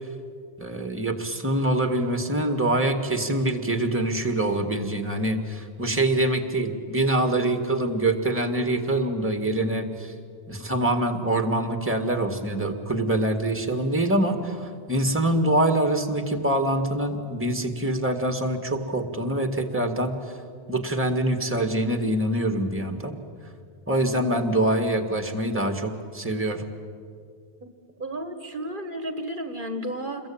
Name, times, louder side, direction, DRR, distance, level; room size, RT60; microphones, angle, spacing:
voice 1, 0.6-10.1 10.5-20.4 20.7-23.1 23.9-26.6, right 1 dB, 10° right, 6 dB, 2.0 m, -25 dB
voice 2, 28.0-30.3, right 1 dB, 50° right, 7 dB, 1.6 m, -33 dB
27.5 x 22.0 x 8.8 m, 2.2 s
omnidirectional pair, 1.1 m